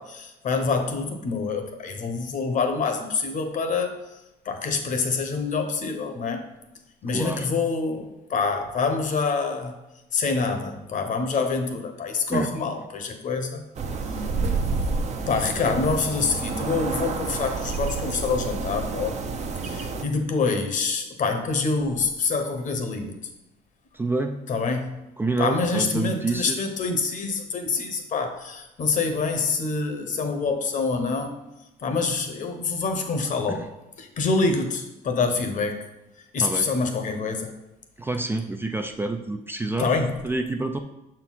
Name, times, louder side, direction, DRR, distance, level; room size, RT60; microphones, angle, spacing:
voice 1, 0.0-6.5 7.0-9.7 10.1-13.6 15.3-19.2 19.6-23.2 24.5-25.0 25.4-31.4 31.8-33.6 34.0-35.9 36.3-37.5 39.8-40.2, left 4 dB, 50° left, 6 dB, 1.0 m, -26 dB
voice 2, 7.1-7.5 12.3-12.6 15.6-15.8 23.9-24.4 25.2-26.6 33.5-33.7 36.4-36.7 38.0-39.9 40.2-40.8, right 2 dB, 15° right, 5 dB, 0.4 m, -28 dB
sound 1, 13.7-20.0, right 4 dB, 40° right, 0.7 m, -29 dB
6.6 x 4.4 x 4.1 m, 0.96 s
cardioid pair, 110°, 17 cm